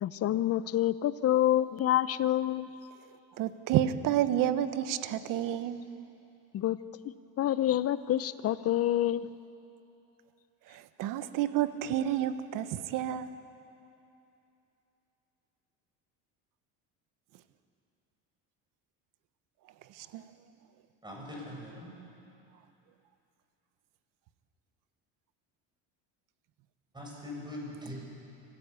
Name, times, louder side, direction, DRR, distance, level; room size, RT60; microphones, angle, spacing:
voice 1, 0.0-2.7 6.5-6.8 7.4-9.3, left 12 dB, 40° left, 15 dB, 0.7 m, -27 dB
voice 2, 3.4-5.8 10.7-13.3 20.0-20.2, right 11 dB, 65° right, 12 dB, 1.2 m, -30 dB
voice 3, 21.0-22.0 26.9-27.9, left 1 dB, 10° right, -2 dB, 7.1 m, -42 dB
25.5 x 15.5 x 8.3 m, 2.8 s
cardioid pair, 115°, 35 cm